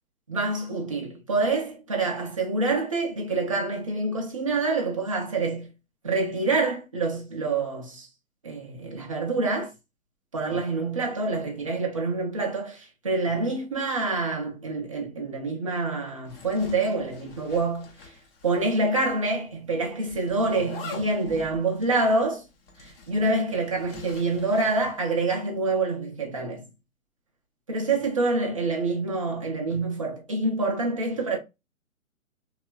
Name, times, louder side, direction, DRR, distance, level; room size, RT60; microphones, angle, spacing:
voice 1, 0.3-5.7 6.0-8.1 8.4-9.7 10.3-18.1 18.4-22.4 22.8-26.7 27.7-31.4, right 3 dB, 25° right, 0.3 m, -26 dB
Zipper (clothing), 16.3-18.8 19.1-19.2 20.1-25.0, left 4 dB, 40° left, 0.8 m, -44 dB
2.7 x 2.2 x 2.2 m
hypercardioid pair, 145°, 42 cm